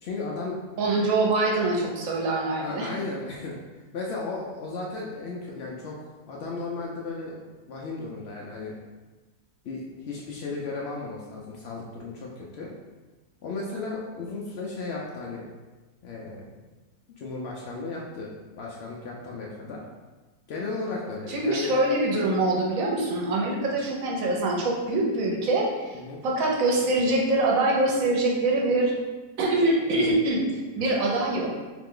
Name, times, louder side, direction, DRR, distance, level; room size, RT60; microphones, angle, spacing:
voice 1, 0.0-0.6 2.6-3.6 3.9-6.0 6.3-8.8 9.6-12.7 13.4-15.4 16.0-16.5 17.1-18.3 18.6-19.8 20.5-21.7 25.9-26.2 29.9-30.2, left 3 dB, 80° left, -3 dB, 0.5 m, -35 dB
voice 2, 0.8-2.9 21.3-28.9 29.4-30.5 30.8-31.6, right 2 dB, 65° right, -1 dB, 1.1 m, -24 dB
3.2 x 2.9 x 3.7 m, 1.2 s
omnidirectional pair, 1.7 m